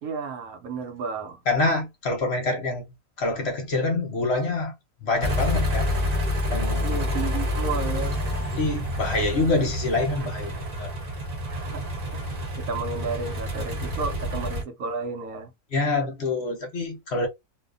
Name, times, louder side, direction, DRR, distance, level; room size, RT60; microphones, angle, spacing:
voice 1, 0.0-1.4 6.8-8.2 11.5-11.8 12.1-12.3 12.6-15.5, right 4 dB, 75° right, 1.1 m, -32 dB
voice 2, 1.5-2.8 3.2-4.7 5.0-5.9 6.5-7.2 8.5-10.9 15.7-17.3, left 2 dB, 55° left, 0.9 m, -26 dB
sound 1, 5.2-14.6, left 1 dB, 35° right, 0.7 m, -28 dB
2.7 x 2.4 x 2.3 m
omnidirectional pair, 1.6 m